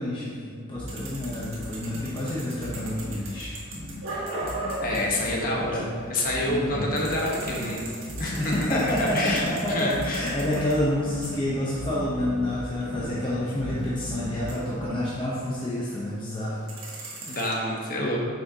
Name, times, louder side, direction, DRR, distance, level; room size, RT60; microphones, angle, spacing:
voice 1, 0.0-3.5 5.2-5.6 6.5-6.9 8.4-16.6, left 1 dB, 25° left, -7 dB, 0.8 m, -28 dB
sound 1, 0.7-15.4, left 1 dB, 75° left, 1.4 m, -38 dB
sound 2, 0.9-6.3 6.6-16.0 16.3-17.5, right 2 dB, 80° right, 1.7 m, -40 dB
voice 2, 4.8-7.9 8.2-10.2 17.2-18.2, left 1 dB, 40° left, -3 dB, 1.2 m, -28 dB
8.3 x 6.1 x 2.8 m, 2.2 s
head